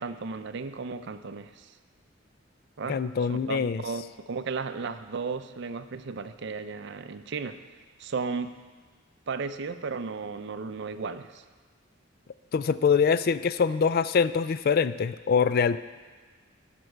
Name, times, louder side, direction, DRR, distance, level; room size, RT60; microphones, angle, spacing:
voice 1, 0.0-1.7 2.8-3.0 3.3-7.6 8.0-8.5 9.3-11.4, right 4 dB, 60° right, 11 dB, 0.5 m, -34 dB
voice 2, 2.9-3.8 12.5-15.8, left 6 dB, 50° left, 14 dB, 0.3 m, -24 dB
12.5 x 6.0 x 6.5 m, 1.4 s
head